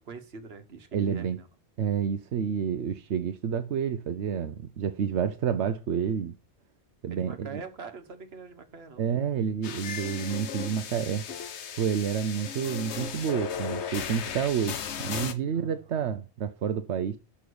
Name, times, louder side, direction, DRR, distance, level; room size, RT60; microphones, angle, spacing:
voice 1, 0.0-1.5 7.1-9.1 15.5-15.8, right 5 dB, 65° right, 1.5 m, -43 dB
voice 2, 0.9-1.4 1.8-6.3 7.0-7.6 9.0-11.3 11.8-17.2, right 8 dB, 90° right, 1.0 m, -29 dB
sound 1, 9.6-15.3, left 7 dB, 85° left, 1.1 m, -36 dB
6.3 x 5.7 x 6.9 m
omnidirectional pair, 1.1 m